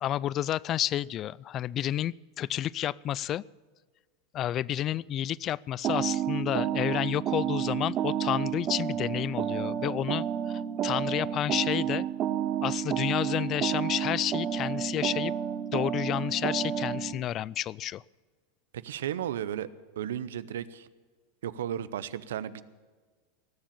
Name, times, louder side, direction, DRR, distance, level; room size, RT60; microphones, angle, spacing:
voice 1, 0.0-3.4 4.3-12.1 12.6-15.3 15.7-18.0, left 12 dB, 40° left, 24 dB, 0.3 m, -30 dB
sound 1, 5.8-17.1, right 10 dB, 40° right, 0.8 m, -30 dB
voice 2, 18.7-19.7 20.0-20.9 21.4-22.6, right 10 dB, 80° right, 16 dB, 0.6 m, -34 dB
18.5 x 7.4 x 8.7 m, 1.4 s
hypercardioid pair, 100°, 0 cm